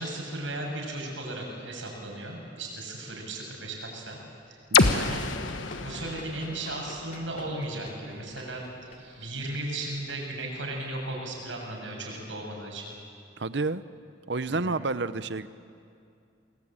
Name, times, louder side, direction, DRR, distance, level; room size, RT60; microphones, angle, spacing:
voice 1, 0.0-4.2 4.5-4.6 4.9-5.3 5.8-12.9 14.5-14.8, right 2 dB, 80° right, 0 dB, 7.2 m, -36 dB
sound 1, 4.7-8.6, left 4 dB, 85° left, 1.2 m, -28 dB
Run, 5.0-11.1, left 1 dB, 40° left, 2.7 m, -50 dB
voice 2, 13.4-13.8 14.3-15.5, right 3 dB, 65° right, 14 dB, 0.8 m, -30 dB
29.5 x 20.5 x 8.9 m, 2.5 s
head